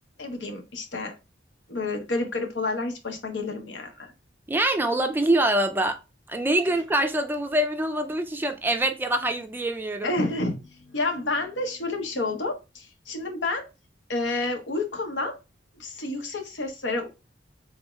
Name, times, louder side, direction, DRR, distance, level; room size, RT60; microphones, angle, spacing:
voice 1, 0.2-1.2 1.7-4.1 10.0-13.7 14.1-15.4 15.8-17.1, left 2 dB, 85° left, 0.9 m, -29 dB
voice 2, 4.5-6.0 6.3-10.1, right 1 dB, 10° right, 0.3 m, -24 dB
3.6 x 3.3 x 3.0 m
head